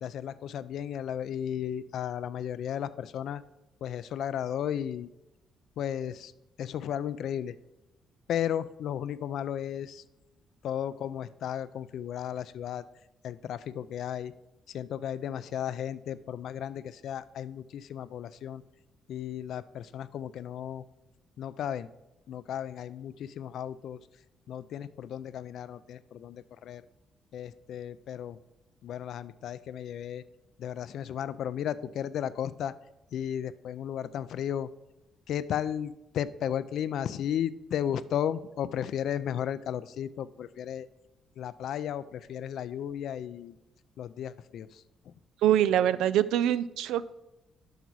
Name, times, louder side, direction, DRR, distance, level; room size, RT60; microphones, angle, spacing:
voice 1, 0.0-3.4 3.8-5.1 5.8-6.3 6.6-7.6 8.3-10.0 10.6-12.8 13.2-14.3 14.7-18.6 19.1-20.8 21.4-21.9 22.3-24.0 24.5-26.8 27.3-28.4 28.8-30.2 30.6-32.7 33.1-34.7 35.3-40.9 41.4-43.6 44.0-45.1, left 9 dB, 75° left, 15 dB, 0.4 m, -34 dB
voice 2, 45.4-47.1, right 11 dB, 85° right, 16 dB, 0.3 m, -24 dB
8.1 x 5.8 x 4.7 m, 0.96 s
cardioid pair, 90°, 0 cm